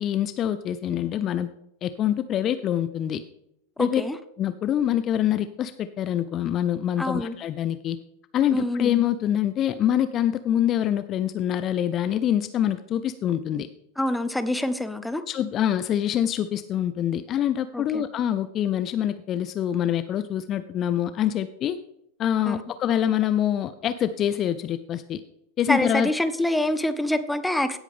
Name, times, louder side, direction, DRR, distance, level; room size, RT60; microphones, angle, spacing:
voice 1, 0.0-1.5 1.8-3.2 3.8-4.0 4.4-8.0 8.3-13.7 15.3-21.8 22.2-25.2 25.6-26.1, left 10 dB, 30° left, 12 dB, 0.5 m, -25 dB
voice 2, 3.8-4.2 7.0-7.4 8.5-8.9 14.0-15.2 17.7-18.0 22.5-22.6 25.7-27.8, left 1 dB, 5° left, 11 dB, 0.8 m, -26 dB
17.0 x 8.2 x 3.5 m, 0.81 s
figure-of-eight pair, 90°, 0 cm